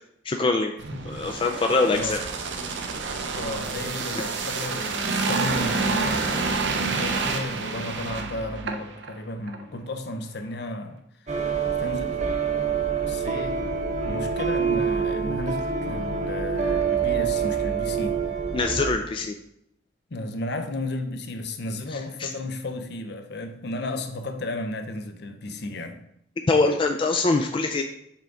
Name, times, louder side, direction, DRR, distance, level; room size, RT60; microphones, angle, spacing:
voice 1, 0.3-0.7 1.1-2.2 4.2-4.3 18.5-19.4 21.9-22.3 26.5-27.8, left 3 dB, 25° left, 4 dB, 0.3 m, -23 dB
sound 1, 0.8-9.1 9.5-9.6, right 4 dB, 70° right, 0.7 m, -28 dB
voice 2, 1.9-2.2 3.2-11.0 11.7-12.2 13.0-13.6 14.0-18.2 20.1-26.0, left 2 dB, 60° left, 6 dB, 0.7 m, -33 dB
sound 2, 11.3-18.9, right 6 dB, 40° right, 0.8 m, -26 dB
5.7 x 4.7 x 3.8 m, 0.74 s
head